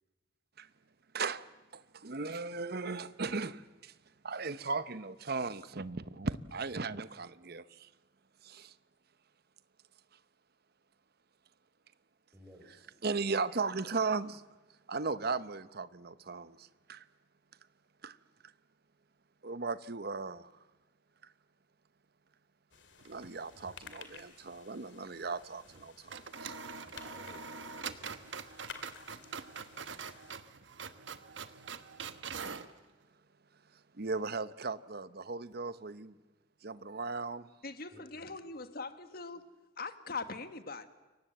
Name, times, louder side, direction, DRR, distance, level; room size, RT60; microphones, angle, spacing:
voice 1, 1.1-1.5 1.7-3.9 4.2-7.9 8.4-8.7 13.0-14.4 14.9-17.0 18.0-18.2 19.4-20.5 23.0-26.5 33.9-36.1 36.6-37.5, right 4 dB, 55° right, 0.9 m, -37 dB
voice 2, 12.3-13.0 26.8-28.4 37.9-38.3, equal, 15° right, 3.9 m, -58 dB
sound 1, 22.7-30.4, left 6 dB, 70° left, 2.5 m, -54 dB
sound 2, 23.0-23.8 24.1-24.2 25.7-25.8 26.1-32.7, right 5 dB, 75° right, 1.3 m, -44 dB
voice 3, 37.6-39.5 39.8-40.9, left 4 dB, 50° left, 1.6 m, -41 dB
29.0 x 23.5 x 7.9 m
head